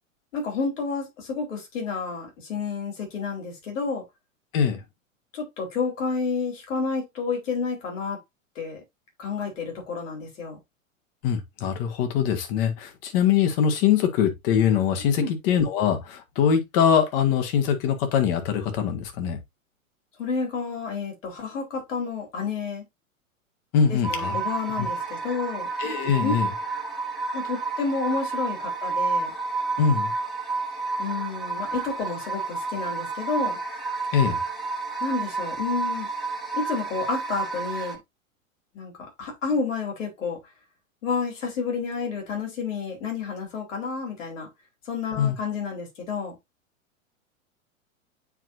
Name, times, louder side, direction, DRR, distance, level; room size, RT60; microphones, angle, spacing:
voice 1, 0.3-4.0 5.3-8.2 8.6-8.8 9.2-10.6 15.2-15.3 20.2-22.8 23.9-25.7 26.2-26.3 27.3-29.3 31.0-33.6 35.0-36.1 36.5-38.0 38.7-38.9 39.2-40.4 41.0-44.5 44.9-46.4, left 5 dB, 65° left, 4.2 m, -30 dB
voice 2, 11.2-19.4 23.7-24.4 24.8-24.9 25.8-26.5 29.8-30.1 34.1-34.4 45.2-45.3, left 8 dB, 40° left, 1.8 m, -23 dB
sound 1, 24.0-38.0, right 3 dB, ahead, 1.3 m, -30 dB
9.1 x 4.5 x 2.6 m
figure-of-eight pair, 100°, 41 cm